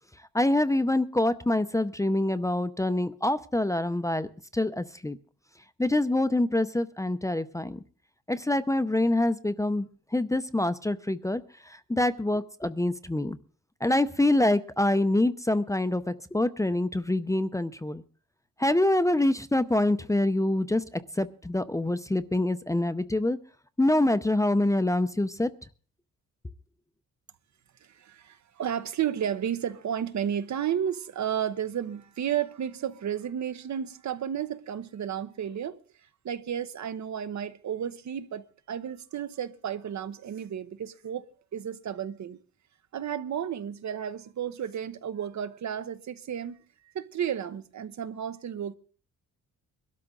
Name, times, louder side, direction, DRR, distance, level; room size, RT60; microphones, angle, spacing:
voice 1, 0.3-5.2 5.8-7.8 8.3-13.4 13.8-18.0 18.6-23.4 23.8-25.5, left 1 dB, 10° left, 0.6 m, -26 dB
voice 2, 27.8-35.8 36.2-41.2 41.5-42.4 42.9-46.6 46.9-48.8, right 9 dB, 60° right, 1.0 m, -32 dB
22.5 x 12.5 x 3.9 m
cardioid pair, 115°, 32 cm